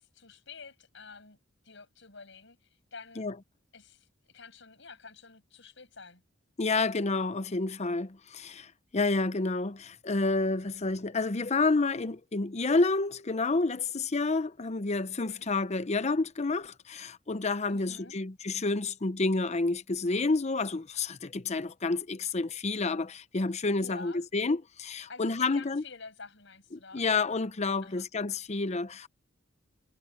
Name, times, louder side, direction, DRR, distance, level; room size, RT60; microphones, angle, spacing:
voice 1, 0.0-1.4 1.6-3.3 3.7-6.2 15.2-15.5 17.7-18.2 23.8-24.2 25.1-27.0 27.8-28.1, left 4 dB, 65° left, 7.2 m, -49 dB
voice 2, 6.6-8.7 8.9-25.8 26.9-29.1, left 3 dB, 35° left, 0.7 m, -29 dB
head